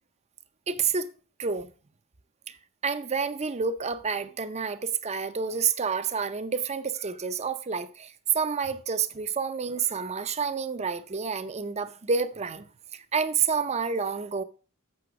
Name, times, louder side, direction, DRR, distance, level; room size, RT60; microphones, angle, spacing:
voice 1, 0.7-1.1 1.4-1.7 2.5-2.6 2.8-12.6 12.9-14.4, right 6 dB, 30° right, 0.6 m, -29 dB
7.8 x 6.0 x 4.7 m
head